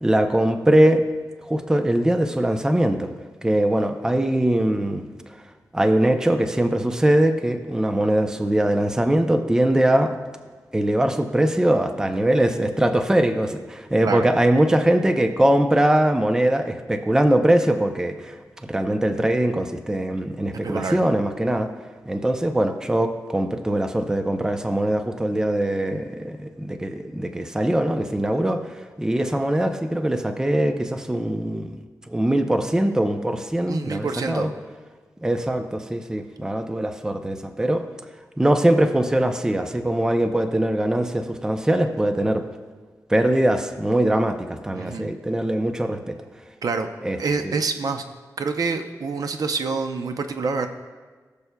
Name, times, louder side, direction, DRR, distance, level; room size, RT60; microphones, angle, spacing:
voice 1, 0.0-1.0 1.5-3.1 3.4-5.0 5.7-10.1 10.7-18.4 18.7-21.7 22.1-28.6 29.0-31.7 32.1-34.5 35.2-37.8 38.4-42.4 43.1-46.2 47.0-47.2 47.4-47.5, right 1 dB, 10° right, 6 dB, 0.5 m, -21 dB
voice 2, 20.6-21.0 33.7-34.5 44.7-45.1 46.6-46.9 47.2-48.0 48.4-50.7, right 4 dB, 65° right, 7 dB, 0.6 m, -26 dB
18.5 x 6.8 x 2.2 m, 1.4 s
wide cardioid pair, 165°, 7 cm